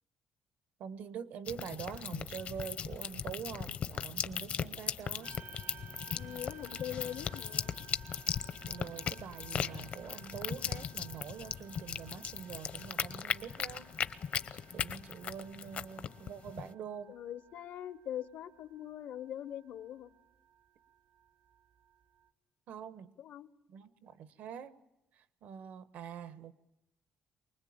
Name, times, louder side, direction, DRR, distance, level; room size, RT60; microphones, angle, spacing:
voice 1, 0.8-5.3 8.7-13.9 14.7-17.1 22.7-23.2 23.7-24.8 25.1-26.5, right 8 dB, 75° right, 1.1 m, -45 dB
sound 1, 1.5-16.7, left 8 dB, 50° left, 0.8 m, -38 dB
sound 2, 5.2-22.3, right 10 dB, 55° right, 0.8 m, -58 dB
voice 2, 6.1-7.7 17.1-20.1 23.2-23.5, left 11 dB, 75° left, 1.0 m, -42 dB
24.5 x 20.0 x 8.7 m
cardioid pair, 140°, 3 cm